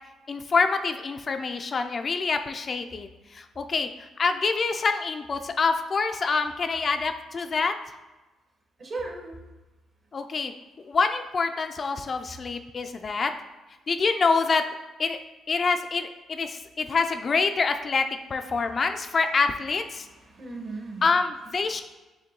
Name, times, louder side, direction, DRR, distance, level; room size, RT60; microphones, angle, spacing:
voice 1, 0.3-7.7 10.1-10.5 10.9-13.3 13.9-14.7 15.0-15.2 15.5-20.1 21.0-21.8, left 4 dB, 40° left, 7 dB, 0.3 m, -26 dB
voice 2, 8.8-9.4 18.5-18.6 20.0-21.0, right 3 dB, 45° right, 0 dB, 1.2 m, -37 dB
6.5 x 2.2 x 3.7 m, 1.1 s
cardioid pair, 90°, 0 cm